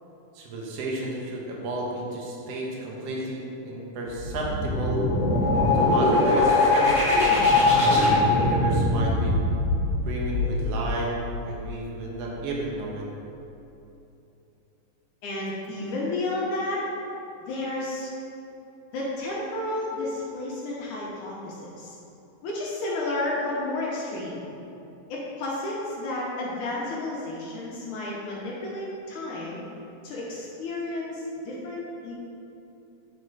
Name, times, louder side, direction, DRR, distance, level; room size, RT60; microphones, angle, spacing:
voice 1, 0.3-5.0 5.8-7.3 8.2-9.4 10.0-11.1 11.4-13.0, right 2 dB, 70° right, -2 dB, 1.5 m, -32 dB
sound 1, 4.1-11.7, left 2 dB, 45° right, 1.0 m, -22 dB
voice 2, 15.2-16.8 17.5-18.1 18.9-22.0 22.4-24.5 25.1-29.6 30.0-32.1, left 2 dB, 70° left, -5 dB, 2.1 m, -31 dB
9.7 x 4.4 x 4.8 m, 2.9 s
omnidirectional pair, 4.3 m